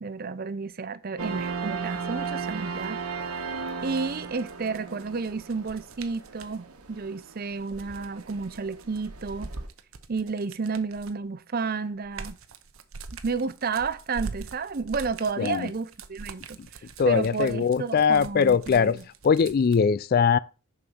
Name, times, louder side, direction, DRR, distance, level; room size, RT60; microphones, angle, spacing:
voice 1, 0.0-3.0 3.8-9.5 10.1-12.4 13.2-19.0, right 4 dB, 45° right, 0.5 m, -31 dB
sound 1, 1.2-9.7, right 5 dB, 85° right, 1.3 m, -36 dB
sound 2, 3.8-6.6 7.5-11.3 11.7-19.8, right 4 dB, 70° right, 0.8 m, -44 dB
voice 2, 15.4-15.7 17.0-19.0 19.2-20.4, left 6 dB, 45° left, 0.3 m, -21 dB
6.9 x 5.2 x 6.2 m
head